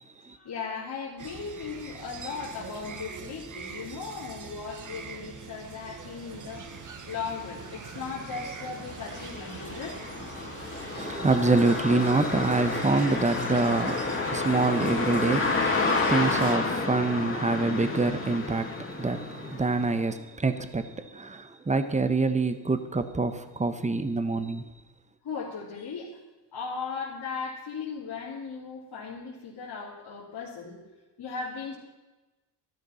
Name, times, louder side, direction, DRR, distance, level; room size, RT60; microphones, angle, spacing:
voice 1, 0.3-6.6 7.1-10.0 25.2-26.2 26.5-30.8 31.2-31.7, left 5 dB, 55° left, 2.9 m, -37 dB
sound 1, 1.2-16.6, right 6 dB, 40° right, 1.3 m, -43 dB
sound 2, 6.6-6.7 7.2-20.0, left 3 dB, 25° left, 2.5 m, -31 dB
voice 2, 10.9-24.6, right 3 dB, 15° right, 1.2 m, -26 dB
13.0 x 12.0 x 5.8 m
cardioid pair, 85°, 47 cm